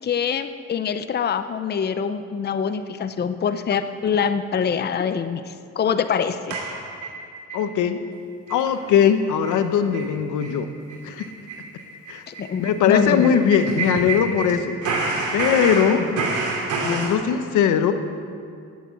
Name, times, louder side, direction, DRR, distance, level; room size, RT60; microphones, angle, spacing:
voice 1, 0.0-6.6 12.3-13.4 15.9-16.3, left 7 dB, 35° left, 10 dB, 0.6 m, -25 dB
sound 1, 6.5-7.6 8.0-8.1 8.5-8.7 9.0-9.1 9.4-9.6 9.9-10.1 10.4-10.5 10.9-14.5 14.8-17.1, right 3 dB, 80° right, 2.8 m, -28 dB
voice 2, 7.5-8.0 8.5-10.7 11.0-11.3 12.1-12.2 12.6-14.8 15.3-16.0 16.8-17.9, left 8 dB, 80° left, 9 dB, 0.9 m, -20 dB
11.5 x 8.5 x 8.3 m, 2.3 s
cardioid pair, 90°, 30 cm